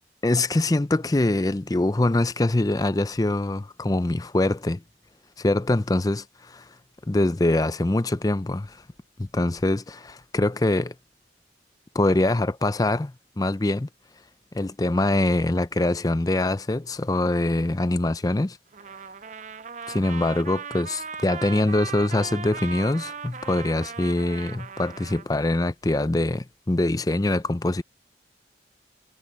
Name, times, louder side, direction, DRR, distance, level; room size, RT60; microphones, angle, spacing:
voice 1, 0.2-4.8 5.4-6.6 7.1-8.8 9.2-10.9 11.9-13.9 14.5-18.6 19.9-27.8, left 2 dB, 20° left, 0.5 m, -24 dB
Trumpet, 18.7-25.3, right 6 dB, 40° right, 0.6 m, -38 dB
head